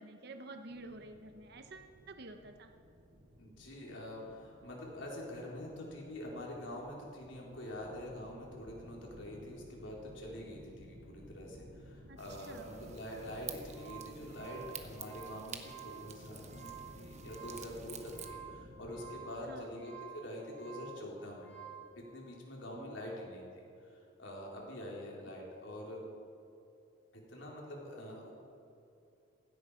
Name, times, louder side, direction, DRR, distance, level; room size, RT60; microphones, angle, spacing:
voice 1, 0.0-2.7 12.1-12.2 12.5-12.7 19.5-19.8 22.7-23.2 25.3-25.4, right 2 dB, 55° right, 6 dB, 0.9 m, -50 dB
sound 1, 0.7-19.2, equal, 85° right, 3.6 m, -56 dB
voice 2, 3.4-21.5 21.9-26.0 27.1-28.3, left 1 dB, 65° left, -2 dB, 4.2 m, -45 dB
sound 2, 12.2-18.3, right 8 dB, 35° right, 1.1 m, -50 dB
sound 3, 13.7-21.9, right 9 dB, 5° left, 3.5 m, -51 dB
16.5 x 16.0 x 5.1 m, 2.7 s
head